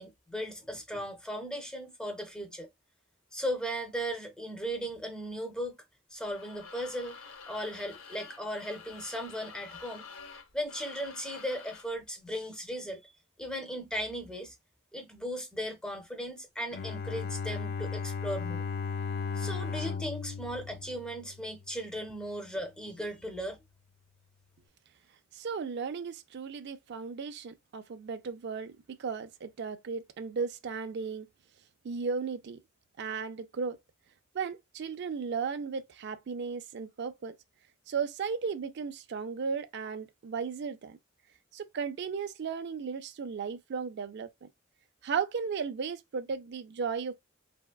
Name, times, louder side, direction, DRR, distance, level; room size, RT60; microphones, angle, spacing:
voice 1, 0.0-2.7 3.3-5.8 6.1-7.2 7.5-10.1 10.5-13.1 13.4-14.5 14.9-18.6 19.3-23.6, equal, 5° left, 0.6 m, -37 dB
sound 1, 6.2-12.0, left 5 dB, 85° left, 0.6 m, -48 dB
Bowed string instrument, 16.7-21.7, left 5 dB, 50° left, 0.3 m, -36 dB
voice 2, 25.3-31.3 31.8-32.6 33.0-33.8 34.3-37.4 37.9-41.0 41.5-44.5 45.0-47.1, right 5 dB, 55° right, 0.4 m, -35 dB
3.4 x 2.1 x 2.3 m
head